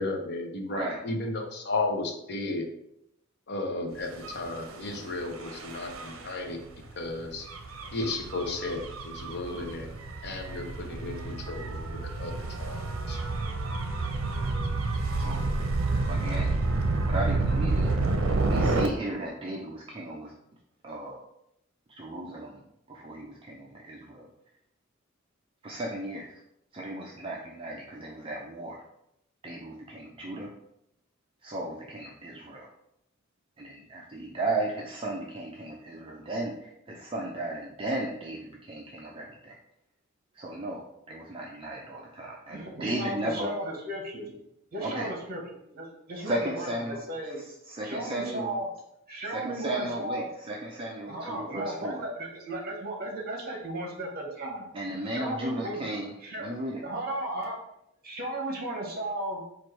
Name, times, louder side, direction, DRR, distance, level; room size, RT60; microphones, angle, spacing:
voice 1, 0.0-2.7 3.5-6.6 7.0-7.5 7.9-9.9 10.2-13.2, left 2 dB, 55° left, 3 dB, 0.7 m, -34 dB
Gull seagull / Waves surf / Siren, 4.1-18.9, right 3 dB, 80° right, 0.6 m, -30 dB
voice 2, 16.1-16.6 17.1-18.0 18.4-20.3 20.8-21.2 21.9-22.6 22.9-24.3 25.6-26.4 26.7-28.8 29.4-30.5 31.4-32.7 33.6-39.6 40.4-43.5 44.8-45.1 46.2-47.0 47.3-48.6 49.3-52.0 54.7-56.1 56.4-56.8, right 1 dB, 25° right, -1 dB, 0.4 m, -35 dB
voice 3, 42.5-44.3 44.7-45.4 45.7-47.4 47.8-48.7 49.1-50.3 51.1-54.7 55.1-55.8 56.2-56.6 56.8-57.6 58.0-59.4, right 1 dB, 45° right, 0 dB, 1.2 m, -35 dB
4.6 x 2.5 x 4.5 m, 0.79 s
head